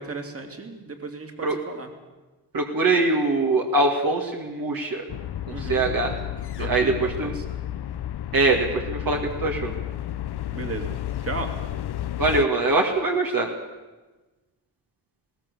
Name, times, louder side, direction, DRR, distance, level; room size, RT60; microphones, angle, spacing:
voice 1, 0.0-1.9 5.5-5.9 6.6-7.3 10.5-10.9 11.2-11.5, right 3 dB, 35° right, 5 dB, 2.9 m, -35 dB
voice 2, 2.5-5.0 5.5-6.1 6.6-7.3 8.3-9.7 12.2-13.5, right 2 dB, 55° right, 1 dB, 2.4 m, -23 dB
sound 1, 5.1-12.5, left 12 dB, 70° left, 0.8 m, -32 dB
21.0 x 18.5 x 7.1 m, 1.2 s
wide cardioid pair, 120°, 41 cm